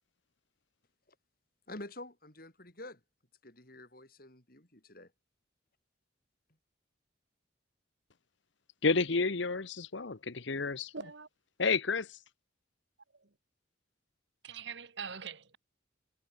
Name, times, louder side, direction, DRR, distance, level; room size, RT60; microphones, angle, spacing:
voice 1, 1.7-3.0 3.4-5.1, left 1 dB, 50° left, 5.4 m, -48 dB
voice 2, 8.8-10.9 11.6-12.2, left 4 dB, 70° left, 1.1 m, -30 dB
voice 3, 10.9-11.3 13.1-13.3 14.4-15.6, right 6 dB, 65° right, 1.5 m, -43 dB
head